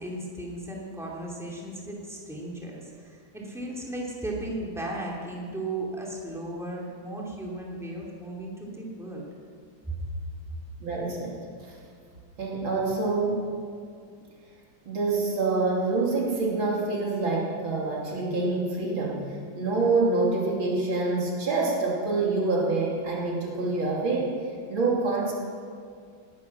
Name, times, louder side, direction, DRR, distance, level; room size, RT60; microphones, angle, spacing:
voice 1, 0.0-9.2 9.9-10.1, right 1 dB, ahead, -3 dB, 2.7 m, -36 dB
voice 2, 10.8-11.4 11.7-11.8 12.4-13.5 14.9-19.2 19.5-24.3 24.7-25.3, right 3 dB, 85° right, -3 dB, 3.8 m, -26 dB
19.5 x 12.0 x 6.0 m, 2.2 s
omnidirectional pair, 2.1 m